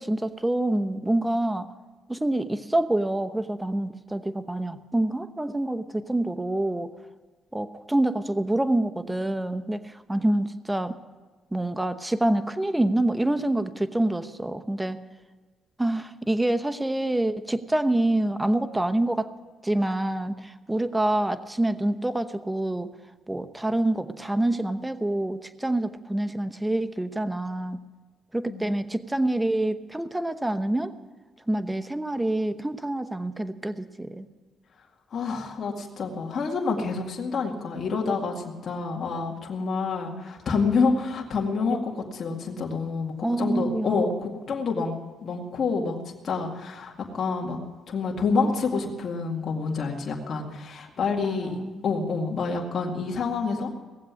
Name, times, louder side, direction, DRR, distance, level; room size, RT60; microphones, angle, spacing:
voice 1, 0.0-1.7 2.1-6.9 7.5-11.0 11.5-15.0 15.8-19.3 19.6-22.9 23.3-27.8 28.3-30.9 31.5-34.3 43.2-44.0 51.2-51.8, right 1 dB, 10° right, 10 dB, 0.9 m, -26 dB
voice 2, 35.1-46.0 46.2-47.6 47.9-51.6 51.8-53.7, left 4 dB, 50° left, 0 dB, 2.1 m, -28 dB
18.5 x 7.7 x 9.7 m, 1.3 s
cardioid pair, 90°, 0 cm